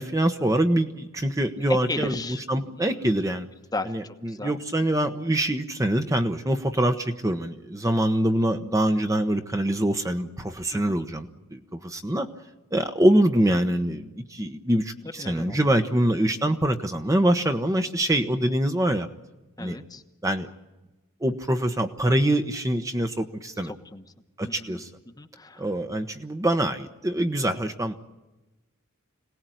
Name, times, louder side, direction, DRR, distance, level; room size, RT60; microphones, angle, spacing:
voice 1, 0.0-2.2 2.5-3.5 3.9-12.3 12.7-19.1 19.6-19.8 20.2-20.5 21.2-23.7 24.4-24.9 25.6-27.9, right 1 dB, 15° right, 6 dB, 1.1 m, -24 dB
voice 2, 1.6-3.1 3.7-4.5 10.7-11.1 15.2-15.7 19.6-20.0 23.6-24.0 24.5-24.8 25.2-25.6, left 2 dB, 15° left, 7 dB, 1.2 m, -35 dB
26.5 x 18.5 x 9.2 m, 1.1 s
head